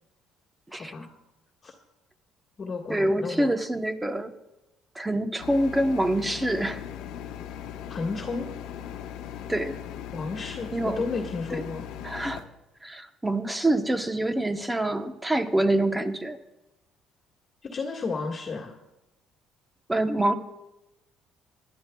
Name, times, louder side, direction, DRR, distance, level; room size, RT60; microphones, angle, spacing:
voice 1, 0.7-1.1 1.6-1.7 2.6-3.5 7.9-8.5 10.1-11.9 17.6-18.8, left 4 dB, 35° left, -3 dB, 1.6 m, -32 dB
voice 2, 2.9-4.3 5.0-6.8 9.5-9.7 10.7-11.0 11.5-11.6 12.0-12.4 12.8-16.4 19.9-20.3, right 1 dB, 10° right, 8 dB, 0.9 m, -26 dB
sound 1, 5.4-12.4, left 9 dB, 90° left, 1.1 m, -39 dB
23.5 x 11.5 x 2.3 m, 0.97 s
cardioid pair, 130°, 0 cm